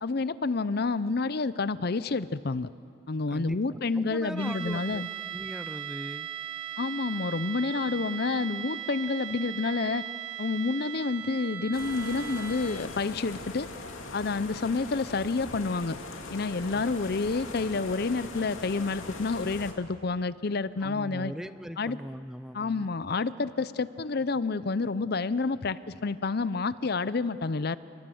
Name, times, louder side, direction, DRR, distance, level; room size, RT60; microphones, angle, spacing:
voice 1, 0.0-2.7 3.1-5.1 6.8-10.1 10.4-13.7 14.1-16.0 16.3-21.3 21.8-22.0 22.5-27.8, left 3 dB, 50° left, 16 dB, 0.6 m, -29 dB
voice 2, 3.3-5.0 5.3-6.3 16.7-16.8 20.8-22.9, equal, ahead, 12 dB, 0.5 m, -40 dB
sound 1, 4.4-13.1, right 10 dB, 30° right, 1.8 m, -38 dB
sound 2, 11.7-19.7, left 3 dB, 85° left, 2.6 m, -41 dB
29.0 x 21.0 x 7.8 m, 2.5 s
head